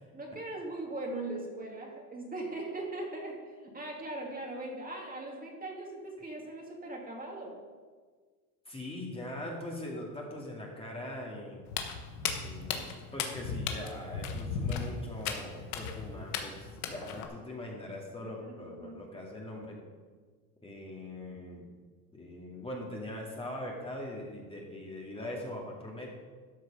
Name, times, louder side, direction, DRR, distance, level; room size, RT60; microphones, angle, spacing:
voice 1, 0.1-7.6 18.2-19.0, right 2 dB, 20° right, -1 dB, 2.3 m, -40 dB
voice 2, 8.7-11.7 12.4-19.8 20.6-21.7 22.1-26.1, left 1 dB, 15° left, -2 dB, 2.1 m, -41 dB
Walk footsteps, 11.7-17.3, left 6 dB, 85° left, 1.4 m, -36 dB
12.5 x 6.4 x 5.3 m, 1.5 s
supercardioid pair, 105°, 43 cm